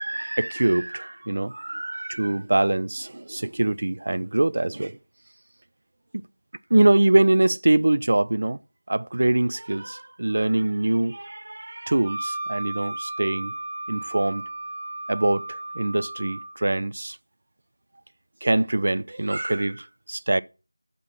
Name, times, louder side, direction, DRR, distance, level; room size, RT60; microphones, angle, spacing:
voice 1, 0.0-5.0 6.1-6.2 6.7-8.6 8.9-13.5 13.9-14.5 15.1-17.2 18.4-20.4, right 2 dB, 45° right, 0.4 m, -23 dB
Wind instrument woodwind instrument, 12.0-16.5, right 2 dB, 15° left, 3.2 m, -34 dB
7.3 x 6.7 x 6.3 m
figure-of-eight pair, 175°, 0 cm